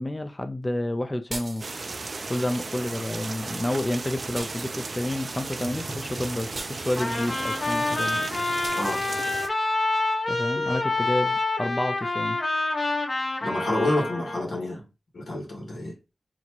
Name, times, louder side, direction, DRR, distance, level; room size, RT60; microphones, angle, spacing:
voice 1, 0.0-1.8 2.3-8.2 10.3-12.4, left 1 dB, 20° left, 0.4 m, -30 dB
sound 1, 1.3-2.0 4.3-5.1 6.5-7.1 8.6-8.9, right 2 dB, 35° right, 0.8 m, -39 dB
sound 2, 1.6-9.5, right 3 dB, 50° right, 0.3 m, -35 dB
Trumpet, 7.0-14.4, left 2 dB, 50° left, 1.2 m, -27 dB
voice 2, 13.4-14.9 15.1-16.0, left 1 dB, 90° left, 1.7 m, -28 dB
4.2 x 2.9 x 2.9 m
wide cardioid pair, 110°, 0 cm